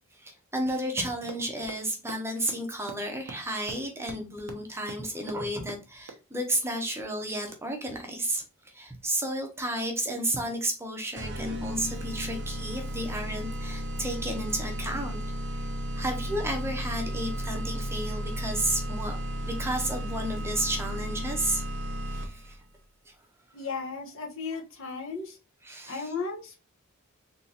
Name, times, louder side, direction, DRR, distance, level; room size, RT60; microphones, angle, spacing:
voice 1, 0.2-8.4 8.7-15.2 15.9-19.2 19.4-21.7 22.1-22.6 23.1-23.2 25.6-26.1, right 1 dB, 10° right, 3 dB, 0.8 m, -32 dB
sound 1, 1.3-1.4 1.7-1.8 2.1-2.2 2.5-2.6 2.9-3.0 3.3-3.4 3.7-3.8 4.1-4.2 4.5-4.6 4.9-5.0 5.3-5.4 5.7-5.8 6.1-6.2, right 4 dB, 90° right, 0.9 m, -39 dB
sound 2, 11.2-22.5, equal, 55° right, 0.7 m, -34 dB
voice 2, 23.5-25.4 25.9-26.6, left 4 dB, 65° left, 0 dB, 1.1 m, -35 dB
4.0 x 3.0 x 2.7 m, 0.30 s
head